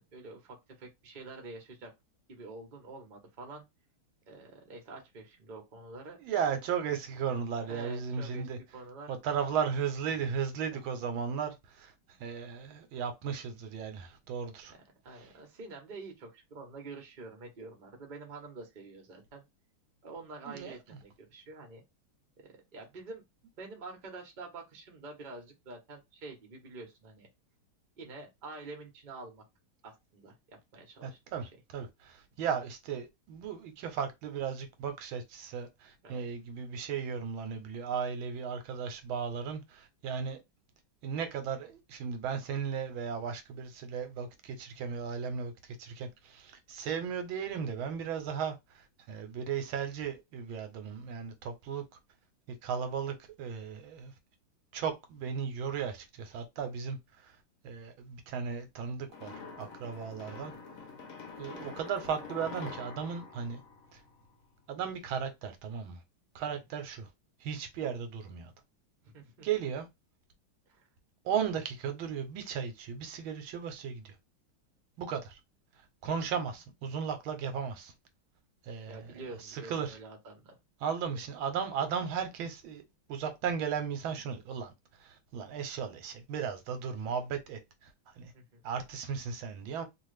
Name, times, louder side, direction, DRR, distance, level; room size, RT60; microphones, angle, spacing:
voice 1, 0.0-1.9 2.3-3.7 4.3-6.2 7.6-8.5 8.7-9.1 10.1-10.3 15.0-19.4 20.0-21.8 22.4-23.2 23.6-27.3 28.0-29.4 29.8-31.5 36.0-36.3 66.4-66.5 69.0-69.5 70.7-70.9 78.9-80.6 81.0-81.2 88.3-88.6, right 3 dB, 40° right, 0.7 m, -47 dB
voice 2, 6.2-8.6 9.1-11.9 12.2-14.7 15.2-15.3 20.5-20.7 31.0-40.4 41.0-51.8 52.6-54.1 54.7-57.3 57.6-60.5 61.4-63.6 63.9-64.0 64.7-66.0 66.3-67.1 67.4-68.5 69.4-69.9 71.2-74.1 75.0-75.4 76.0-77.9 78.6-79.0 79.4-80.0 80.8-82.8 83.1-84.7 85.0-88.3 88.6-89.9, right 7 dB, 85° right, 1.5 m, -36 dB
sound 1, 59.1-64.4, left 4 dB, 60° left, 0.9 m, -46 dB
3.1 x 2.4 x 3.2 m
omnidirectional pair, 2.2 m